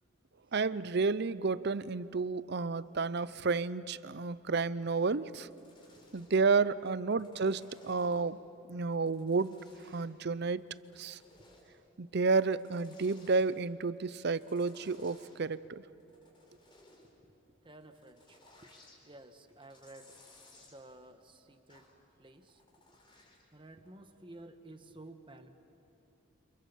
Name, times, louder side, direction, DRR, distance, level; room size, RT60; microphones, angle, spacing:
voice 1, 0.5-5.5 6.1-8.4 8.7-9.6 9.9-10.6 11.0-11.2 12.0-15.8, right 4 dB, 50° right, 17 dB, 0.6 m, -31 dB
sound 1, 5.3-6.5 7.0-8.4 8.9-10.2 10.6-11.8 12.3-13.5 14.2-15.5 15.9-17.1 17.8-19.0 19.5-20.8 21.7-22.0 22.3-23.5 23.9-24.0, left 2 dB, 20° left, 4.2 m, -61 dB
voice 2, 17.6-18.7 19.0-20.2 20.6-21.9 22.2-22.6 22.9-23.0 23.5-25.5, right 2 dB, 25° right, 7 dB, 1.3 m, -53 dB
29.0 x 27.0 x 7.2 m, 3.0 s
head